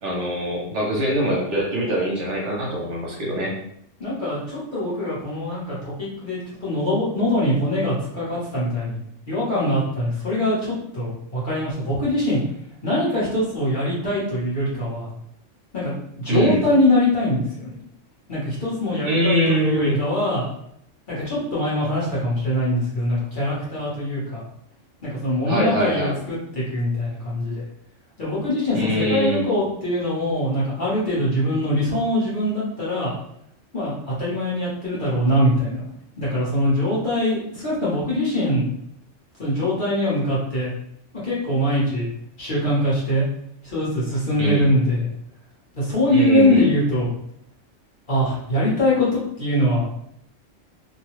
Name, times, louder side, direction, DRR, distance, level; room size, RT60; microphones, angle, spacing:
voice 1, 0.0-3.5 16.3-16.6 19.0-20.0 25.4-26.1 28.7-29.5 44.4-44.7 46.1-46.7, right 1 dB, 65° right, -3 dB, 1.1 m, -23 dB
voice 2, 4.0-9.0 9.3-12.4 12.8-15.1 15.7-17.7 18.3-20.4 21.1-24.4 25.0-27.6 28.2-33.1 33.7-35.8 36.2-38.6 39.4-40.7 41.2-42.1 42.4-43.2 43.7-45.1 45.7-47.1 48.1-49.9, left 1 dB, 40° left, -9 dB, 1.3 m, -23 dB
2.9 x 2.3 x 3.1 m, 0.73 s
omnidirectional pair, 1.3 m